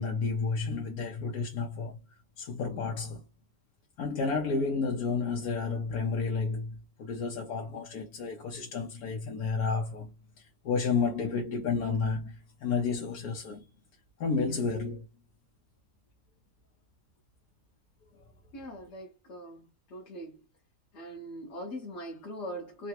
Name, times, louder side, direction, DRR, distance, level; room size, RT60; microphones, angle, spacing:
voice 1, 0.0-2.0 2.4-3.2 4.0-13.6 14.2-15.1, left 4 dB, 90° left, 1.3 m, -31 dB
voice 2, 18.5-20.4 20.9-22.9, equal, 55° left, 1.2 m, -41 dB
3.8 x 2.3 x 2.9 m
omnidirectional pair, 1.5 m